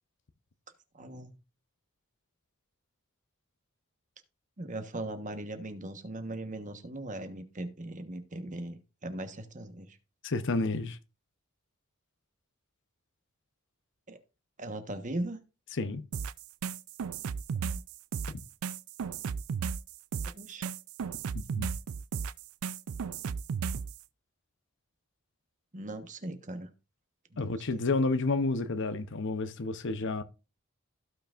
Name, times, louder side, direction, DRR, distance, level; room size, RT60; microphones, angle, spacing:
voice 1, 0.9-1.3 4.6-10.0 14.1-14.2 14.6-15.4 17.6-17.8 20.2-20.6 25.7-26.7 27.3-27.8, right 1 dB, 35° right, 1.2 m, -39 dB
voice 2, 10.2-11.0 15.7-16.0 21.5-21.7 27.4-30.2, left 3 dB, 60° left, 0.8 m, -30 dB
sound 1, 16.1-24.0, right 6 dB, 90° right, 0.4 m, -35 dB
16.0 x 5.8 x 2.5 m
head